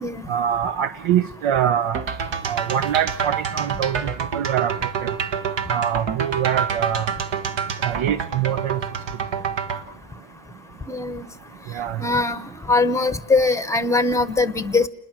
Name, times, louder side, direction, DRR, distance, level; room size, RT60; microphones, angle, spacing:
voice 1, 0.3-2.0 2.5-4.7 5.0-5.1 5.7-7.1 7.8-8.8 11.7-12.0, right 10 dB, 85° right, 12 dB, 0.9 m, -24 dB
sound 1, 1.9-9.8, right 6 dB, 60° right, 1.5 m, -27 dB
voice 2, 10.9-11.2 12.0-14.9, left 3 dB, 5° left, 10 dB, 0.9 m, -21 dB
29.0 x 21.0 x 6.0 m, 0.78 s
wide cardioid pair, 180°, 48 cm